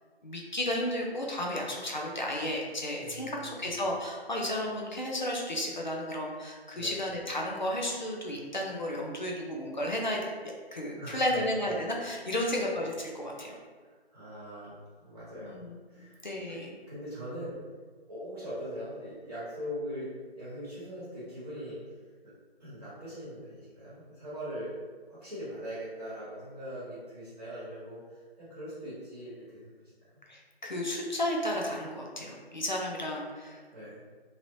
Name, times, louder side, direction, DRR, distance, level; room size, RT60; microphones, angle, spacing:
voice 1, 0.2-13.5 15.4-15.6 16.0-16.7 30.3-33.6, left 1 dB, 45° left, -1 dB, 0.5 m, -33 dB
voice 2, 3.0-3.7 6.7-7.0 11.0-11.4 12.4-12.5 13.8-15.5 15.9-16.2 16.5-16.6 16.9-17.6 18.1-21.9 22.6-24.7 25.1-29.9 33.7-34.0, equal, 35° right, -11 dB, 1.2 m, -41 dB
3.1 x 2.8 x 2.7 m, 1.5 s
figure-of-eight pair, 175°, 32 cm